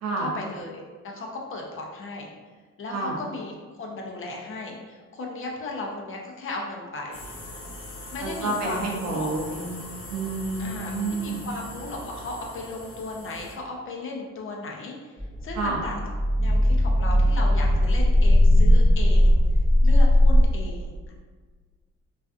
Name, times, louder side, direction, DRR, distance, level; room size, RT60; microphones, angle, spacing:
voice 1, 0.2-2.3 2.8-7.3 8.1-9.3 10.6-15.1 15.4-16.0 16.4-19.4 19.8-21.1, left 2 dB, 45° left, -1 dB, 0.5 m, -36 dB
sound 1, 7.1-13.5, left 1 dB, 70° left, 0.9 m, -41 dB
voice 2, 8.2-11.4 15.6-15.8, right 3 dB, 55° right, 0 dB, 0.6 m, -29 dB
sound 2, 15.2-20.5, left 1 dB, ahead, 0.7 m, -18 dB
2.4 x 2.3 x 2.4 m, 1.5 s
cardioid pair, 90°, 30 cm